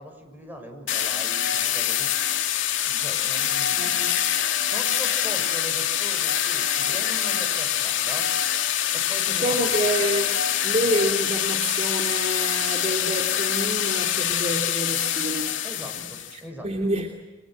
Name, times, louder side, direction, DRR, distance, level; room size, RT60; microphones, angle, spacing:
voice 1, 0.0-2.1 2.8-3.9 4.6-8.3 8.9-9.8 15.6-16.7, equal, 10° right, 3 dB, 6.6 m, -40 dB
sound 1, 0.9-16.4, left 10 dB, 80° left, 2.1 m, -25 dB
voice 2, 3.7-4.2 9.3-15.9 16.3-17.1, right 1 dB, 35° right, 2 dB, 2.9 m, -28 dB
29.5 x 25.0 x 7.8 m, 1.1 s
head